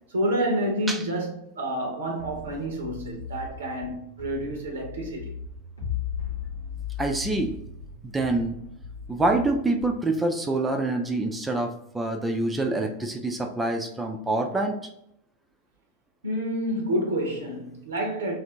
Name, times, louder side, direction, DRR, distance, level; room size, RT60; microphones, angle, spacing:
voice 1, 0.1-5.3 16.2-18.3, right 1 dB, 65° right, 0.6 m, -29 dB
sound 1, 2.2-10.2, left 2 dB, 60° left, 1.0 m, -42 dB
sound 2, 5.8-9.2, left 9 dB, 90° left, 1.1 m, -35 dB
voice 2, 7.0-7.6 8.0-8.6 9.1-14.8, right 2 dB, 10° right, 0.4 m, -26 dB
3.2 x 2.5 x 2.8 m
figure-of-eight pair, 90°, 0 cm